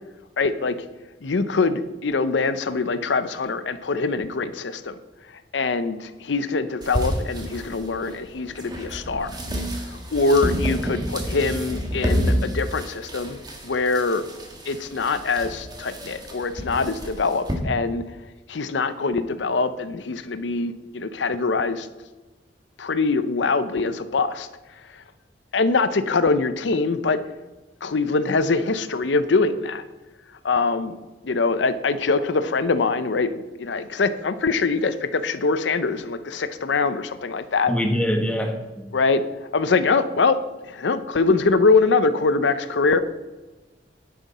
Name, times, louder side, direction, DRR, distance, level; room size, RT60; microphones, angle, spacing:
voice 1, 0.4-0.8 1.2-4.9 5.5-9.3 9.9-14.2 14.7-18.0 18.5-21.9 22.8-24.5 25.5-27.2 27.8-29.8 30.4-30.9 31.2-37.7 38.9-39.2 39.5-40.4 40.6-43.0, left 4 dB, 90° left, 12 dB, 0.6 m, -23 dB
sound 1, 6.8-17.5, equal, 25° right, 1.9 m, -29 dB
voice 2, 37.7-38.9, equal, 5° left, 3 dB, 1.4 m, -24 dB
11.0 x 9.4 x 4.2 m, 1.2 s
head